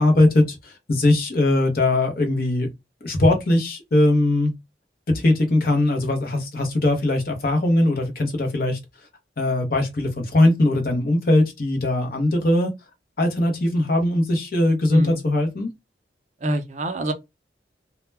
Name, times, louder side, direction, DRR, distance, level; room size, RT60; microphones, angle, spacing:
voice 1, 0.0-2.7 3.0-4.5 5.1-8.8 9.4-12.7 13.2-15.7, left 1 dB, 55° left, 0.7 m, -20 dB
voice 2, 16.4-17.1, right 1 dB, 40° right, 0.4 m, -25 dB
2.2 x 2.1 x 3.1 m
head